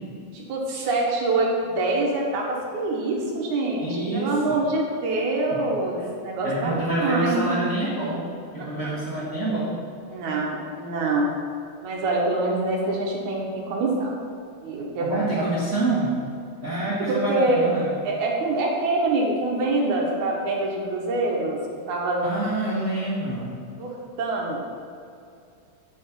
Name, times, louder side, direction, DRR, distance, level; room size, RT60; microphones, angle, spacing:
voice 1, 0.3-3.9 4.1-7.4 8.6-8.7 10.1-11.3 11.8-14.1 14.6-15.5 17.1-17.6 18.0-21.6 21.9-22.2 23.8-24.6, right 2 dB, 65° right, -2 dB, 2.2 m, -25 dB
voice 2, 3.8-4.6 5.5-5.6 6.4-9.8 15.0-16.1 16.6-18.0 22.2-23.6, right 2 dB, 40° right, -9 dB, 1.0 m, -27 dB
8.4 x 4.2 x 7.2 m, 2.4 s
omnidirectional pair, 4.1 m